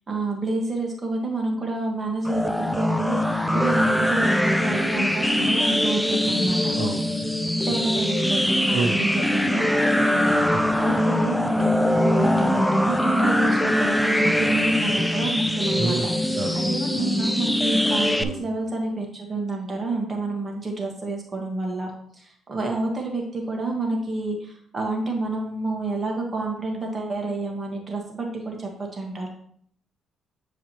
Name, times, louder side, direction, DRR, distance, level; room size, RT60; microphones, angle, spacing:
voice 1, 0.1-6.7 7.6-8.4 8.7-10.3 10.8-29.3, right 2 dB, 35° right, 1 dB, 1.5 m, -29 dB
sound 1, 2.3-18.2, left 1 dB, ahead, 0.5 m, -22 dB
voice 2, 15.8-16.6 18.2-18.4, right 4 dB, 70° right, 3 dB, 0.9 m, -28 dB
8.7 x 4.9 x 3.0 m, 0.64 s
cardioid pair, 90°, 0 cm